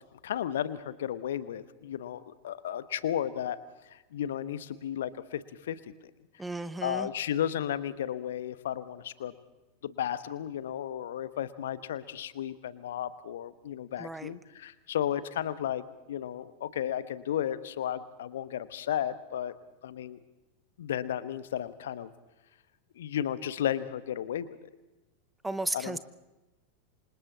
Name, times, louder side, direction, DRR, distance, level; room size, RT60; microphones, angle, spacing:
voice 1, 0.2-3.6 3.9-5.8 6.8-9.3 9.8-19.5 19.8-20.2 20.8-22.1 23.0-24.6 25.7-26.0, left 10 dB, 60° left, 14 dB, 1.2 m, -34 dB
voice 2, 6.4-7.1 14.0-14.3 25.4-26.0, right 2 dB, 5° right, 13 dB, 0.9 m, -34 dB
28.0 x 26.0 x 4.1 m, 1.1 s
figure-of-eight pair, 90°, 0 cm